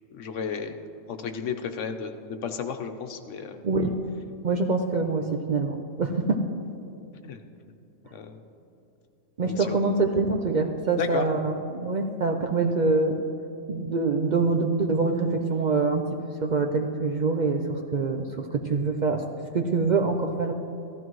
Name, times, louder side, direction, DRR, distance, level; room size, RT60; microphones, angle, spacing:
voice 1, 0.1-0.8 1.1-3.6 7.2-7.4 8.1-8.4 9.4-9.9 10.9-11.3, left 6 dB, 75° left, 7 dB, 1.1 m, -33 dB
voice 2, 3.6-3.9 4.4-6.4 9.4-13.2 13.7-16.1 16.4-19.2 19.5-20.5, right 3 dB, 50° right, 4 dB, 0.6 m, -25 dB
15.0 x 14.0 x 3.1 m, 2.7 s
omnidirectional pair, 1.3 m